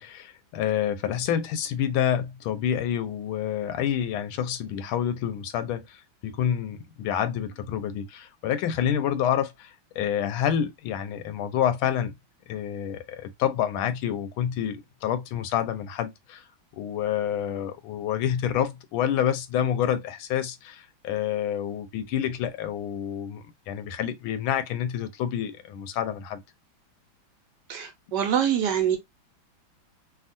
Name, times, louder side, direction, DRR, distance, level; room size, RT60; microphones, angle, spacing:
voice 1, 0.0-12.1 12.5-16.4 16.8-26.4, left 9 dB, 85° left, 1.4 m, -28 dB
voice 2, 27.7-29.0, right 9 dB, 70° right, 1.2 m, -25 dB
3.5 x 2.3 x 2.5 m
omnidirectional pair, 2.2 m